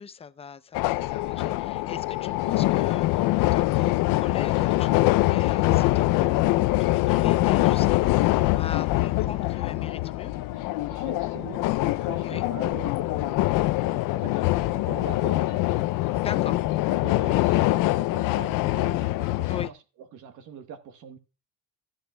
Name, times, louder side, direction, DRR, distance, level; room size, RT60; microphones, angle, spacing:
voice 1, 0.0-10.3 12.2-12.5 16.1-16.6 19.5-19.7, left 6 dB, 20° left, 0.5 m, -41 dB
sound 1, 0.7-19.7, left 18 dB, 75° left, 0.5 m, -24 dB
voice 2, 10.5-13.4 13.7-16.0 16.3-16.4 16.9-21.2, right 8 dB, 65° right, 1.3 m, -43 dB
14.0 x 9.8 x 2.2 m
cardioid pair, 150°, 33 cm